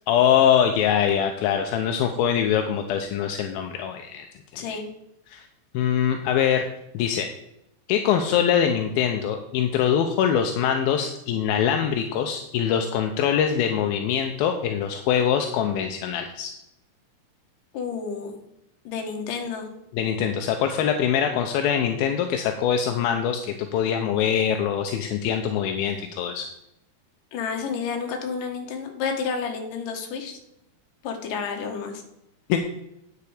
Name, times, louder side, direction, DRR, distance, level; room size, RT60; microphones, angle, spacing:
voice 1, 0.1-4.3 5.3-5.5 5.7-6.6 6.9-7.3 7.9-16.5 19.9-26.5 32.5-32.6, left 8 dB, 80° left, 5 dB, 2.3 m, -23 dB
voice 2, 4.5-4.8 17.7-18.3 18.8-19.7 27.3-30.4 31.0-32.0, left 5 dB, 60° left, 3 dB, 2.7 m, -30 dB
9.7 x 8.2 x 5.0 m, 0.83 s
omnidirectional pair, 4.8 m